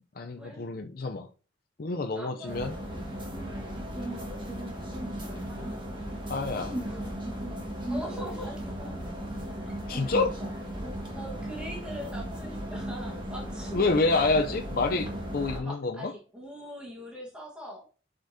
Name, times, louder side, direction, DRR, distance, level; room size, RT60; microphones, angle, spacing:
voice 1, 0.2-1.3 1.8-2.7 6.3-6.8 9.9-10.4 13.7-16.0, left 3 dB, 50° left, 0.5 m, -27 dB
voice 2, 2.1-2.9 4.1-4.5 5.4-5.7 6.8-7.2 7.9-9.1 9.6-9.8 11.1-14.2 15.5-17.9, equal, 5° right, 1.3 m, -42 dB
sound 1, 2.5-15.6, equal, 25° right, 1.4 m, -36 dB
11.5 x 5.0 x 2.7 m
head